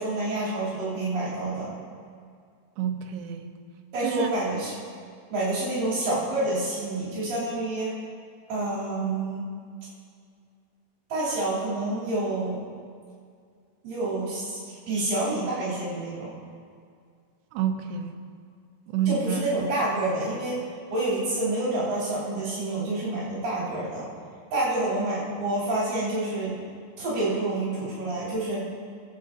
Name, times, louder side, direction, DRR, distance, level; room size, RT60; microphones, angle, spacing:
voice 1, 0.0-1.7 3.9-4.7 5.3-7.9 8.5-9.4 11.1-12.6 13.8-14.6 14.9-16.3 19.1-20.6 20.9-24.1 24.5-26.6 27.0-28.6, right 2 dB, 65° right, -11 dB, 5.2 m, -28 dB
voice 2, 2.8-3.5 4.0-4.3 17.5-18.2 18.9-19.5, right 9 dB, 85° right, 5 dB, 3.0 m, -28 dB
25.0 x 8.3 x 2.8 m, 2.2 s
omnidirectional pair, 4.9 m